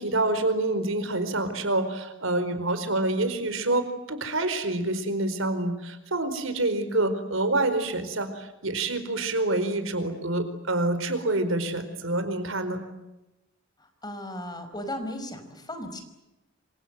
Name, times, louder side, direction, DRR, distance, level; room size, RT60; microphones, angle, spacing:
voice 1, 0.0-12.8, right 2 dB, 80° right, 10 dB, 4.6 m, -27 dB
voice 2, 13.8-16.0, left 1 dB, 20° left, 8 dB, 5.2 m, -36 dB
27.5 x 26.5 x 7.9 m, 0.97 s
head